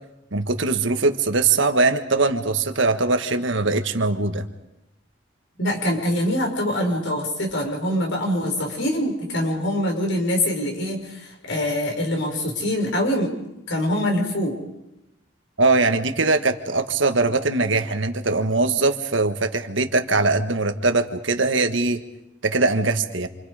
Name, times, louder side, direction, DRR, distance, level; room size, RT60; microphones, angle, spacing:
voice 1, 0.3-4.4 15.6-22.0 22.4-23.3, right 3 dB, 75° right, 7 dB, 1.6 m, -21 dB
voice 2, 5.6-13.3 13.7-14.6, left 1 dB, 75° left, 1 dB, 5.8 m, -24 dB
28.0 x 27.0 x 5.0 m, 0.89 s
head